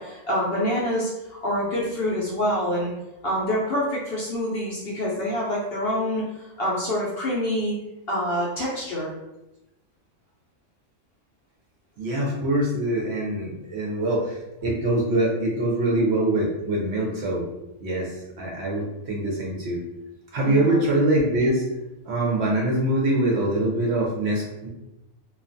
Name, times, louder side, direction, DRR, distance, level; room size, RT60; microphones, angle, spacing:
voice 1, 0.0-2.9 3.2-7.8 8.1-9.1 20.4-20.8, equal, 60° left, -5 dB, 0.6 m, -26 dB
voice 2, 12.0-17.4 17.8-19.8 20.3-21.6 22.1-24.7, right 1 dB, 65° right, -3 dB, 0.7 m, -24 dB
2.4 x 2.3 x 2.5 m, 0.96 s
omnidirectional pair, 1.4 m